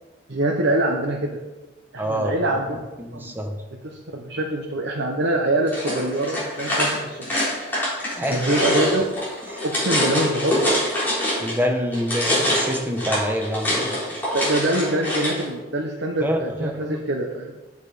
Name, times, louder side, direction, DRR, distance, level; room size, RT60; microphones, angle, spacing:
voice 1, 0.3-1.4 1.9-2.8 3.1-3.4 3.8-7.2 8.3-9.1 9.6-10.7 14.3-17.5, right 1 dB, 80° right, -1 dB, 1.1 m, -24 dB
voice 2, 2.0-2.3 2.7-3.6 8.1-8.7 9.5-9.6 11.4-14.0 16.2-17.0, equal, 10° right, 3 dB, 0.9 m, -27 dB
sound 1, 5.7-11.6 11.9-15.4, left 1 dB, 10° left, 3.8 m, -24 dB
9.9 x 6.8 x 5.1 m, 1.1 s
head